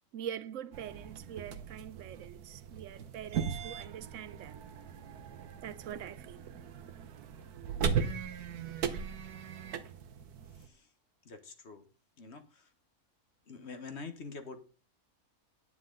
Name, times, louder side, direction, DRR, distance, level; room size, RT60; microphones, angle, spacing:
voice 1, 0.1-4.6 5.6-6.5, right 9 dB, 65° right, 0.9 m, -44 dB
sound 1, 0.7-10.7, right 6 dB, 85° right, 1.5 m, -38 dB
voice 2, 11.3-11.8 12.2-12.4 13.5-14.7, left 4 dB, 45° left, 1.5 m, -45 dB
9.8 x 9.7 x 3.8 m
omnidirectional pair, 1.6 m